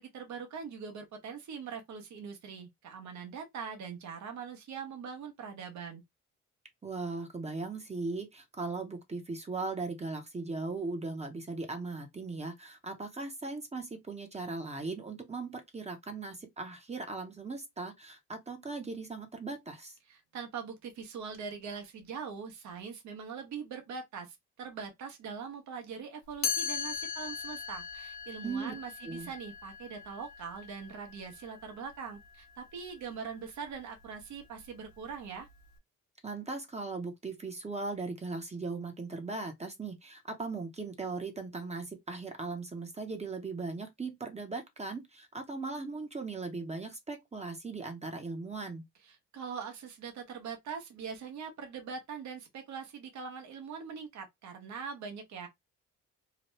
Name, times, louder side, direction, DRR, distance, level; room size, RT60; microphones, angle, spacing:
voice 1, 0.0-6.0 20.1-35.5 49.0-55.5, right 6 dB, 70° right, 1.0 m, -42 dB
voice 2, 6.8-19.9 28.4-28.7 29.0-29.3 36.2-48.8, right 3 dB, 20° right, 0.7 m, -38 dB
Chime, 26.4-32.3, left 7 dB, 65° left, 1.0 m, -39 dB
2.9 x 2.2 x 3.0 m
cardioid pair, 90°, 30 cm